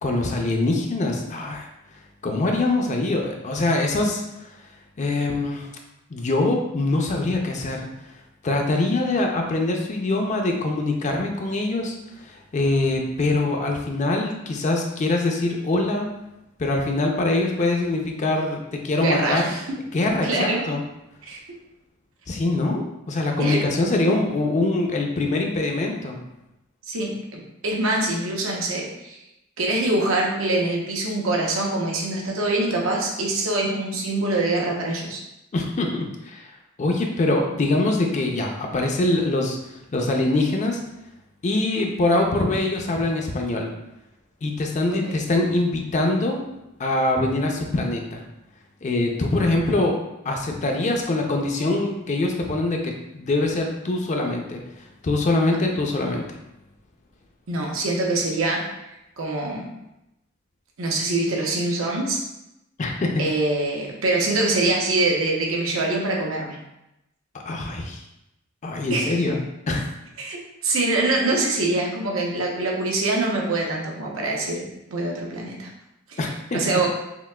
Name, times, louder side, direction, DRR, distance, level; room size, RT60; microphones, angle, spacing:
voice 1, 0.0-1.7 2.2-4.5 5.0-5.7 6.1-7.9 8.4-16.1 16.6-19.5 19.9-20.8 22.3-26.2 35.5-39.6 39.9-40.8 41.4-43.7 44.4-46.4 46.8-48.2 48.8-50.0 50.2-54.6 55.0-56.4 62.8-63.2 67.5-68.0 68.6-69.8 76.2-76.6, left 2 dB, 35° left, 2 dB, 0.4 m, -23 dB
voice 2, 19.0-19.8 20.2-20.6 21.2-21.4 23.4-23.6 26.9-29.2 29.6-35.2 44.9-45.2 57.5-58.6 59.2-59.7 60.8-62.2 63.2-66.6 68.9-69.2 70.2-70.4 70.6-74.6 74.9-75.7 76.1-76.2 76.5-76.9, right 2 dB, 80° right, -1 dB, 0.8 m, -24 dB
5.7 x 2.4 x 2.3 m, 0.89 s
head